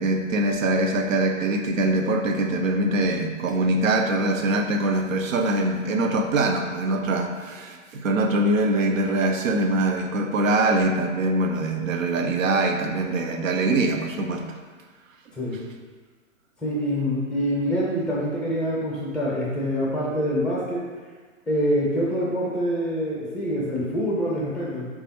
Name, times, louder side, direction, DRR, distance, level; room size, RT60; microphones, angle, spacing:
voice 1, 0.0-14.6, right 2 dB, 80° right, 4 dB, 0.6 m, -23 dB
voice 2, 16.6-20.9 21.5-24.9, equal, 5° left, -5 dB, 0.5 m, -25 dB
3.4 x 2.4 x 4.1 m, 1.5 s
hypercardioid pair, 125°, 39 cm